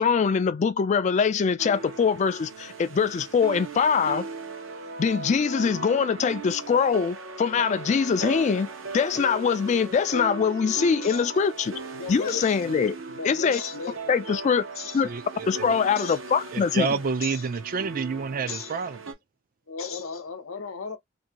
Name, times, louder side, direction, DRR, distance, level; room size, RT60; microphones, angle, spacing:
voice 1, 0.0-4.3 5.0-8.7 8.9-11.8 12.1-13.0 13.2-13.6 14.1-14.6 14.9-15.1 15.5-16.9, left 6 dB, 35° left, 0.3 m, -23 dB
sound 1, 1.6-19.1, right 3 dB, 75° right, 0.8 m, -38 dB
voice 2, 11.9-12.6 13.1-14.1 14.8-15.0 16.0-16.2 17.2-17.4 18.5-18.8 19.7-21.0, left 5 dB, 90° left, 0.7 m, -35 dB
voice 3, 15.0-15.8 16.5-19.0, right 5 dB, 45° right, 0.4 m, -29 dB
2.6 x 2.6 x 2.8 m
head